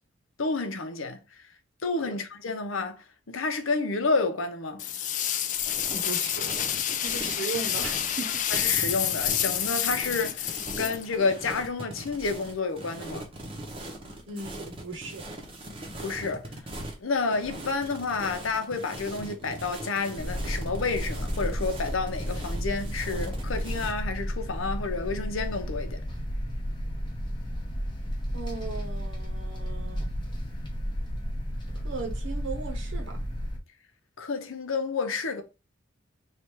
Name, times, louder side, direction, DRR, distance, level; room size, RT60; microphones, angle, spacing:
voice 1, 0.4-1.2 1.8-4.8 8.5-13.3 16.0-16.5 17.0-26.0 34.2-35.4, left 4 dB, 85° left, 0.7 m, -30 dB
sound 1, 4.8-11.5, left 10 dB, 40° left, 0.3 m, -29 dB
sound 2, 5.6-24.0, right 1 dB, 25° right, 0.8 m, -41 dB
voice 2, 5.9-6.5 7.0-8.4 14.3-15.2 28.3-30.1 31.7-33.2, right 4 dB, 70° right, 0.9 m, -37 dB
sound 3, 20.2-33.6, equal, 25° left, 0.8 m, -33 dB
3.3 x 2.5 x 4.5 m
head